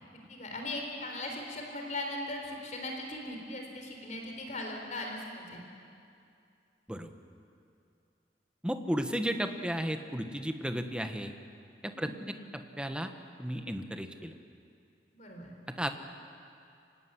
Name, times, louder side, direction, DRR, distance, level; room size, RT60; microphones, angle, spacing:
voice 1, 0.1-5.6 11.9-12.2 15.1-15.5, left 1 dB, 45° left, 1 dB, 4.1 m, -39 dB
voice 2, 8.6-11.3 11.8-12.1 12.8-13.1 13.4-14.3 15.8-15.9, equal, 5° right, 7 dB, 1.2 m, -33 dB
25.5 x 17.0 x 9.9 m, 2.5 s
head